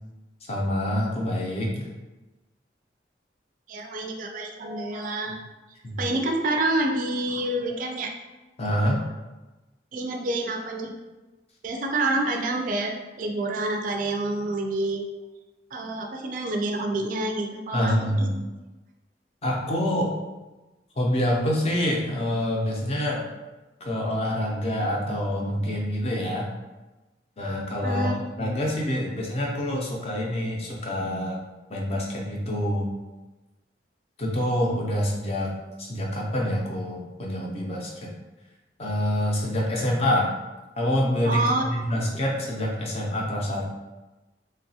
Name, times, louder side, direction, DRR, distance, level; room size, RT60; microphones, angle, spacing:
voice 1, 0.5-1.9 5.8-6.1 8.6-9.1 17.7-18.4 19.4-20.1 21.0-23.2 23.8-26.5 27.4-28.1 28.4-31.4 31.7-32.9 34.2-35.5 35.8-38.1 38.8-40.3 40.8-43.7, equal, 35° left, -2 dB, 0.5 m, -26 dB
voice 2, 3.7-5.4 6.0-8.1 9.9-10.9 11.6-15.1 15.7-18.4 27.8-28.1 41.3-41.6, right 2 dB, 45° right, 2 dB, 0.3 m, -28 dB
3.0 x 2.2 x 2.7 m, 1.1 s
head